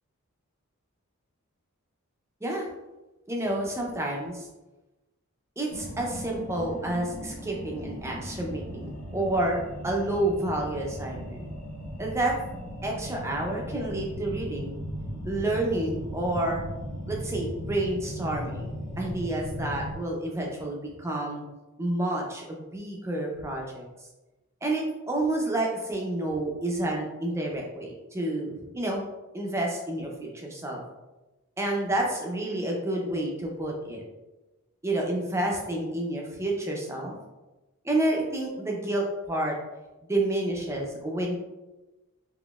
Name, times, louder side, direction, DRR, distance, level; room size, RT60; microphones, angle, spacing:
voice 1, 3.3-4.5 5.6-11.5 12.0-12.4 12.8-14.7 15.2-16.7 17.1-18.7 19.0-21.4 21.8-23.9 24.6-29.0 29.3-30.8 31.6-34.0 34.8-37.2 37.8-39.6 40.0-41.3, right 1 dB, 10° right, -1 dB, 0.5 m, -29 dB
sound 1, 5.7-20.0, equal, 80° left, 1.3 m, -37 dB
3.8 x 2.9 x 2.3 m, 1.1 s
head